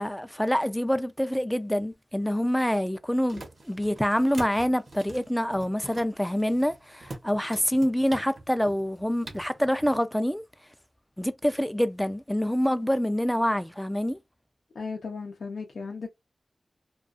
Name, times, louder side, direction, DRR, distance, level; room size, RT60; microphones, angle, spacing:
voice 1, 0.0-10.4 11.2-14.2, equal, 5° left, 0.3 m, -26 dB
sound 1, 2.1-10.0, right 2 dB, 60° right, 0.8 m, -46 dB
voice 2, 14.7-16.1, left 4 dB, 90° left, 0.5 m, -35 dB
2.4 x 2.3 x 2.4 m
wide cardioid pair, 70°, 0 cm